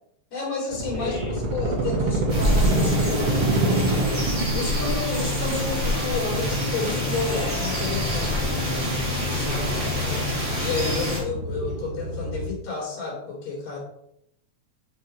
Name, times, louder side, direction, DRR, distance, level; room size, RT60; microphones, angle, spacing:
voice 1, 0.3-4.1 4.5-9.9 10.6-13.8, left 4 dB, 65° left, -3 dB, 4.3 m, -31 dB
sound 1, 0.7-12.5, right 2 dB, 55° right, 2.7 m, -28 dB
voice 2, 1.0-1.4 9.3-10.2, left 1 dB, 30° left, -5 dB, 3.2 m, -36 dB
sound 2, 2.3-11.2, left 1 dB, 25° right, 3.0 m, -26 dB
8.2 x 6.5 x 4.4 m, 0.75 s
omnidirectional pair, 3.3 m